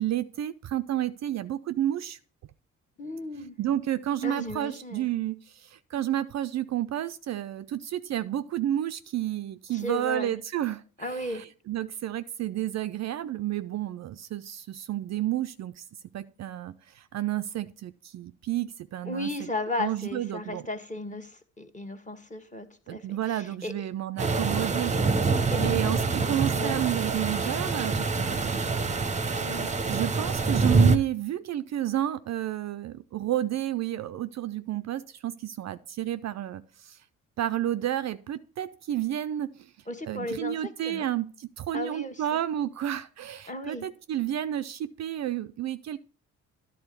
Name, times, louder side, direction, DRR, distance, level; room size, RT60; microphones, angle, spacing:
voice 1, 0.0-2.2 3.6-5.4 5.9-15.8 16.1-16.7 17.1-19.3 19.8-20.6 22.9-24.9 25.6-28.7 29.4-36.6 37.4-39.5 40.1-46.0, right 12 dB, 50° right, 0.4 m, -31 dB
voice 2, 3.0-3.6 4.2-5.1 9.7-10.3 11.0-11.4 19.1-23.9 25.5-26.0 26.3-26.8 29.4-30.0 39.9-41.1 41.7-42.4 43.5-43.8, left 1 dB, 20° left, 1.3 m, -35 dB
sound 1, 24.2-31.0, right 4 dB, 20° right, 0.8 m, -25 dB
10.5 x 3.8 x 6.7 m
hypercardioid pair, 55°, 36 cm